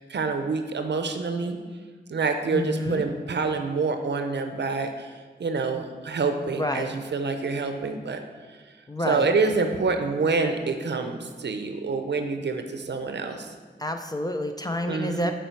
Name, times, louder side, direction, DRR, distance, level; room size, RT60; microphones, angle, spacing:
voice 1, 0.0-1.6 2.1-5.1 5.4-8.2 9.1-13.5 14.9-15.3, right 4 dB, 80° right, 6 dB, 0.6 m, -27 dB
voice 2, 2.5-3.0 6.5-6.9 8.9-9.3 13.8-15.3, left 1 dB, 20° left, 5 dB, 0.4 m, -29 dB
6.9 x 4.4 x 4.5 m, 1.5 s
wide cardioid pair, 85°, 18 cm